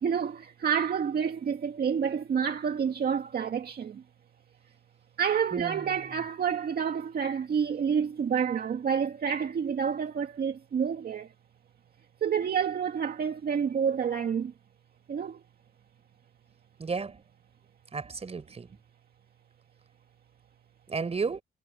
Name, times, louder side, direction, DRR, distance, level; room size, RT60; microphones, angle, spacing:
voice 1, 0.0-4.0 5.2-11.3 12.2-14.5 15.1-15.4, right 7 dB, 50° right, 2.0 m, -29 dB
voice 2, 5.5-5.8 16.8-17.2 17.9-18.7 20.9-21.4, right 4 dB, 30° right, 4.3 m, -33 dB
cardioid pair, 90°, 20 cm